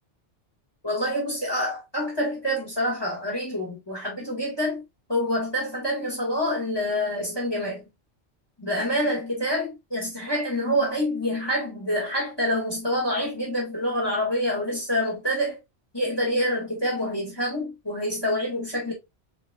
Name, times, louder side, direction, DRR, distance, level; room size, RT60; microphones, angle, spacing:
voice 1, 0.8-4.8 5.1-7.8 8.6-15.6 15.9-18.9, equal, 20° left, 2.0 m, -27 dB
6.6 x 2.4 x 2.5 m
omnidirectional pair, 1.2 m